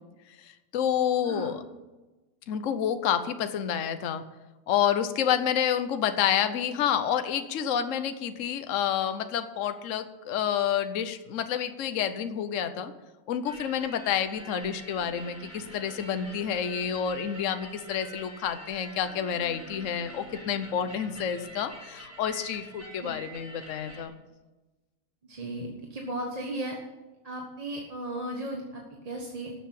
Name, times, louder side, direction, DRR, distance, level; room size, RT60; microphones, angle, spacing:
voice 1, 0.4-1.6 2.5-4.2 4.7-12.9 13.3-24.2, left 9 dB, 55° left, 9 dB, 1.1 m, -29 dB
sound 1, 13.4-24.0, right 1 dB, 10° left, 4.9 m, -46 dB
voice 2, 25.2-26.8 27.2-29.5, right 1 dB, 25° right, 0 dB, 1.4 m, -35 dB
13.0 x 7.5 x 8.5 m, 1.1 s
omnidirectional pair, 1.7 m